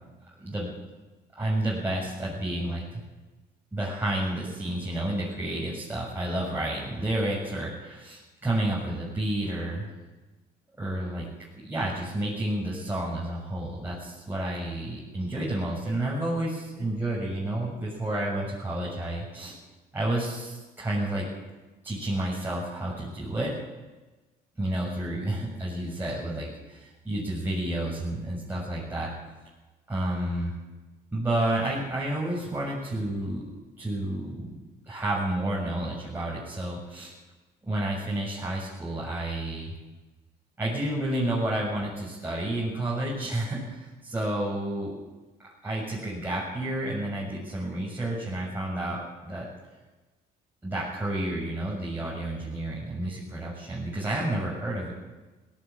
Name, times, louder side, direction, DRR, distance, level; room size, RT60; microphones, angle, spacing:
voice 1, 0.4-0.7 1.4-2.8 3.7-9.9 10.8-11.3 11.6-19.6 19.9-21.2 21.8-23.5 24.6-29.1 29.9-30.5 31.1-33.5 33.8-34.6 34.8-37.1 37.6-39.7 40.6-44.9 45.4-49.5 50.6-54.9, right 1 dB, 10° right, -7 dB, 7.2 m, -30 dB
18.5 x 17.0 x 8.8 m, 1.2 s
cardioid pair, 110°, 17 cm